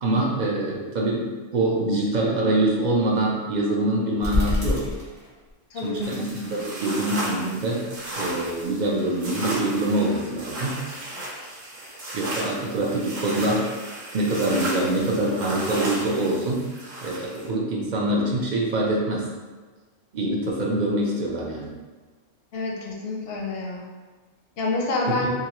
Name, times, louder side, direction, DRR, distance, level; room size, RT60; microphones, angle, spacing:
voice 1, 0.0-4.9 5.8-7.8 8.2-10.8 12.1-13.7 14.1-16.6 17.0-19.2 20.1-21.7 25.1-25.3, right 1 dB, 55° right, -3 dB, 0.5 m, -24 dB
sound 1, 4.2-5.5 5.8-7.4 7.8-9.1 9.6-10.8, left 1 dB, 15° right, 1.0 m, -30 dB
voice 2, 5.7-6.1 22.5-23.9 24.6-25.3, left 2 dB, 65° left, -1 dB, 0.7 m, -27 dB
sound 2, 6.0-17.5, right 1 dB, 85° right, 1.2 m, -34 dB
3.0 x 2.5 x 2.9 m, 1.4 s
omnidirectional pair, 1.3 m